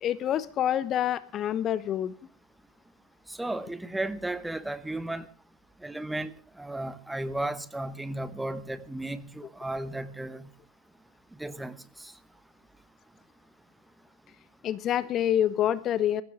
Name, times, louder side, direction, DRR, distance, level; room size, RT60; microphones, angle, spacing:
voice 1, 0.0-2.1 14.6-16.2, left 11 dB, 30° left, 0.8 m, -27 dB
voice 2, 3.4-5.3 5.8-6.3 6.6-10.4 11.4-11.7, right 1 dB, 5° right, 1.1 m, -34 dB
22.5 x 16.0 x 3.6 m
figure-of-eight pair, 90°, 0 cm